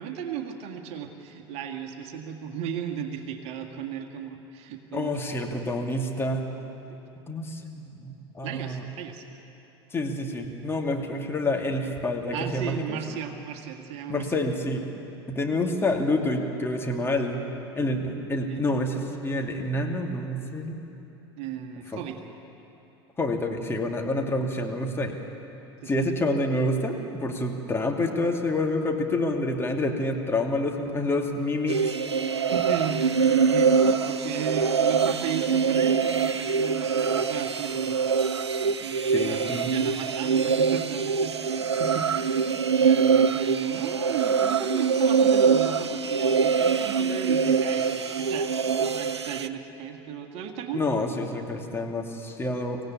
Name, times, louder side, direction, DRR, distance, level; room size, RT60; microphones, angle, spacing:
voice 1, 0.0-5.2 6.9-7.0 8.4-9.3 12.3-14.3 18.5-18.6 21.4-22.3 25.8-26.0 32.4-38.0 38.5-50.9, right 8 dB, 45° right, 5 dB, 1.8 m, -35 dB
voice 2, 4.9-6.5 7.3-8.8 9.9-13.2 14.1-14.8 15.3-17.5 17.7-20.8 21.9-22.0 23.2-25.1 25.9-32.0 39.1-39.7 50.7-52.8, left 1 dB, 15° left, 2 dB, 2.5 m, -28 dB
sound 1, 31.7-49.5, right 6 dB, 75° right, 0.7 m, -24 dB
25.5 x 16.5 x 8.6 m, 3.0 s
figure-of-eight pair, 75°, 14 cm